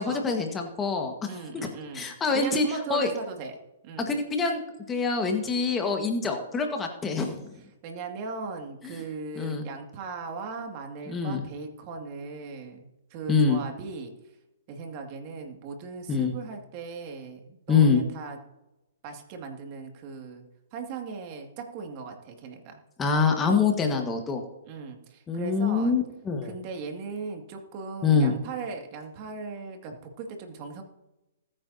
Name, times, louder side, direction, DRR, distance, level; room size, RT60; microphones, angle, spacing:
voice 1, 0.0-1.2 1.5-1.7 1.9-2.6 2.9-3.1 4.0-4.6 4.9-7.5 8.8-9.0 9.4-9.6 11.1-11.4 13.3-13.6 16.1-16.3 17.7-18.0 23.0-24.4 25.3-26.5 28.0-28.3, left 5 dB, 15° left, 3 dB, 1.6 m, -25 dB
voice 2, 1.3-2.1 2.3-3.6 3.8-4.1 7.8-14.1 14.7-18.4 19.0-20.4 20.7-22.8 24.7-25.9 26.4-30.8, right 4 dB, 40° right, 3 dB, 2.3 m, -38 dB
20.0 x 9.0 x 2.8 m, 0.95 s
hypercardioid pair, 135°, 0 cm